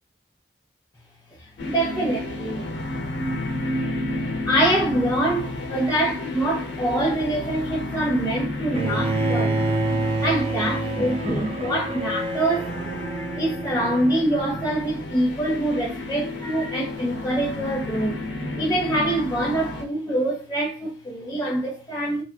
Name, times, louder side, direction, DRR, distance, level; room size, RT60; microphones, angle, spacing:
voice 1, 1.4-3.0 3.4-3.5 4.1-9.8 10.2-12.8 13.3-18.2 18.6-22.2, right 1 dB, 20° left, 0.9 m, -25 dB
sound 1, 1.6-19.8, left 2 dB, 85° left, 0.9 m, -31 dB
Bowed string instrument, 8.7-14.8, right 2 dB, 35° right, 0.6 m, -28 dB
4.5 x 2.5 x 2.8 m
head